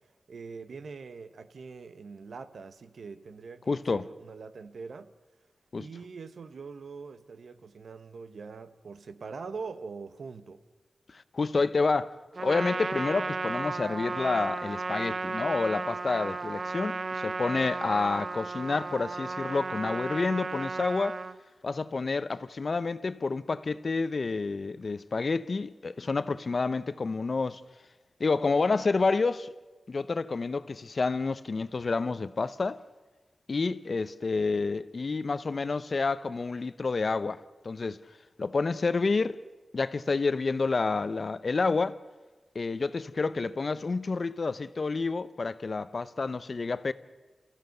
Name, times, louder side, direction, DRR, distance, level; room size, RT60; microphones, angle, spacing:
voice 1, 0.3-5.1 5.7-10.6, right 4 dB, 85° right, 1.1 m, -43 dB
voice 2, 3.7-4.1 5.7-5.9 11.1-12.1 12.4-21.2 21.6-27.6 28.2-29.5 29.9-32.8 33.5-38.0 38.4-39.4 39.7-42.0 42.5-46.9, left 4 dB, 50° left, 0.7 m, -29 dB
Trumpet, 12.4-21.4, right 3 dB, 50° right, 0.8 m, -34 dB
29.0 x 15.0 x 7.9 m
wide cardioid pair, 100°, 0 cm